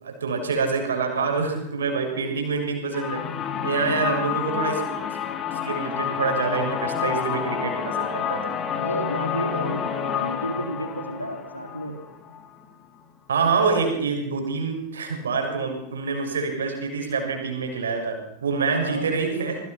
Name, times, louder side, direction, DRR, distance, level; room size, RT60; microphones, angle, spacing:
voice 1, 0.0-3.3 3.6-4.8 5.6-8.5 13.3-19.6, right 4 dB, 70° right, 4 dB, 6.6 m, -26 dB
sound 1, 2.9-12.6, left 8 dB, 30° left, 3.2 m, -29 dB
voice 2, 3.9-4.2 8.7-11.9 18.6-19.1, right 1 dB, 90° left, 4 dB, 3.8 m, -32 dB
27.5 x 23.0 x 6.0 m, 0.86 s
figure-of-eight pair, 90°, 0 cm